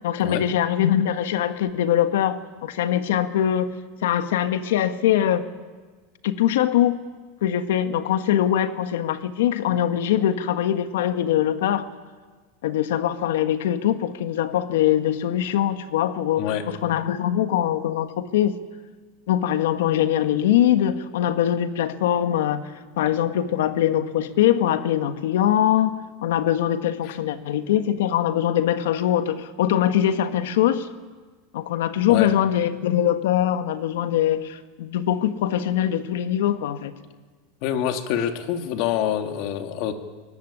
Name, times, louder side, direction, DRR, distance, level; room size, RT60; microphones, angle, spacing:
voice 1, 0.0-3.7 4.0-5.5 6.2-7.0 7.4-11.9 12.6-18.6 19.3-22.7 23.0-30.9 31.5-36.9, left 11 dB, 80° left, 9 dB, 1.5 m, -22 dB
voice 2, 16.4-16.7 27.0-27.2 32.1-32.3 37.6-39.9, left 10 dB, 50° left, 6 dB, 2.3 m, -26 dB
23.5 x 18.5 x 9.9 m, 1.4 s
supercardioid pair, 155°, 0 cm